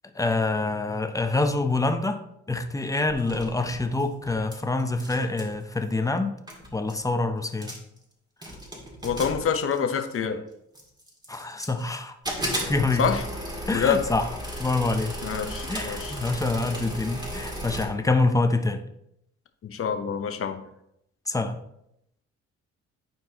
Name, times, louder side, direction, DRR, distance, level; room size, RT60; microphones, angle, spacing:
voice 1, 0.1-2.2 2.5-6.3 6.7-7.7 11.3-12.2 12.7-13.0 13.7-14.3 14.6-15.1 15.7-18.8 21.3-21.6, left 3 dB, 10° left, 7 dB, 0.7 m, -26 dB
sound 1, 3.1-4.5 4.8-5.5 6.2-6.3 6.5-7.0 7.5-8.0 8.4-10.2 10.7-11.9 12.2-17.9, equal, 15° right, 1.9 m, -35 dB
voice 2, 9.0-10.4 13.0-13.2 13.7-14.0 15.2-16.2 19.6-20.6, left 7 dB, 45° left, 7 dB, 0.9 m, -26 dB
10.5 x 4.4 x 2.9 m, 0.78 s
cardioid pair, 90°, 30 cm